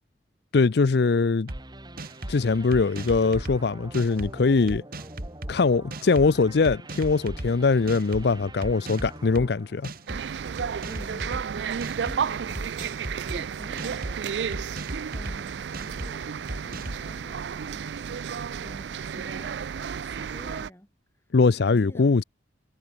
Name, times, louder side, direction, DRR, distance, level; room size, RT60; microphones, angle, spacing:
voice 1, 0.5-1.5 2.3-4.8 5.5-9.9 21.3-22.2, left 4 dB, 65° left, 0.5 m, -22 dB
sound 1, 1.5-10.5, right 1 dB, 25° right, 2.5 m, -45 dB
sound 2, 1.5-1.6 2.0-2.4 2.7-3.6 3.9-4.3 4.7-5.5 5.9-6.3 6.6-7.5 7.9-8.2 8.6-9.5 9.8-10.2 10.6-11.4 11.8-12.2 12.5-13.4 13.8-14.1 14.5-15.4 15.7-16.1 16.5-17.0, right 1 dB, 55° right, 2.6 m, -35 dB
sound 3, 10.1-20.7, right 7 dB, 75° right, 0.4 m, -32 dB
voice 2, 10.8-14.8 15.1-18.2 18.6-19.6 20.0-20.9 21.6-22.1, equal, 15° left, 3.7 m, -48 dB
head